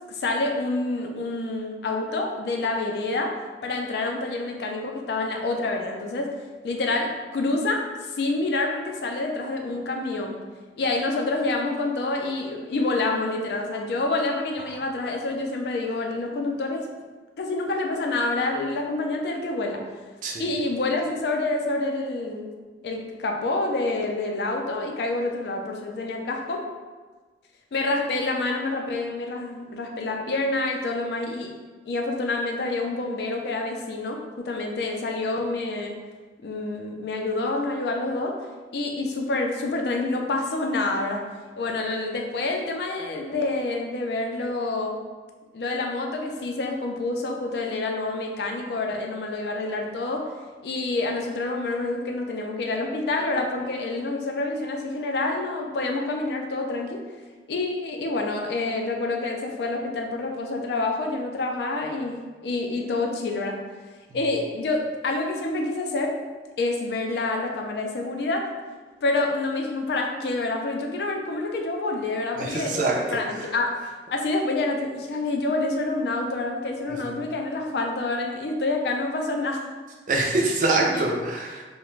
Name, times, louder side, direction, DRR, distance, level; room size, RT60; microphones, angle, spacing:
voice 1, 0.1-3.3 3.6-6.3 6.6-10.4 10.8-16.9 17.4-19.8 20.4-22.5 22.8-26.6 27.7-31.5 31.8-36.0 36.4-38.4 38.7-41.2 41.6-45.0 45.5-50.3 50.6-57.0 57.5-63.6 64.1-66.2 66.6-68.5 69.0-73.8 74.1-79.7 80.7-81.0, left 2 dB, 65° left, 2 dB, 0.4 m, -27 dB
voice 2, 72.4-73.2 80.1-81.6, right 2 dB, 45° right, -1 dB, 0.4 m, -24 dB
2.4 x 2.1 x 3.0 m, 1.4 s
head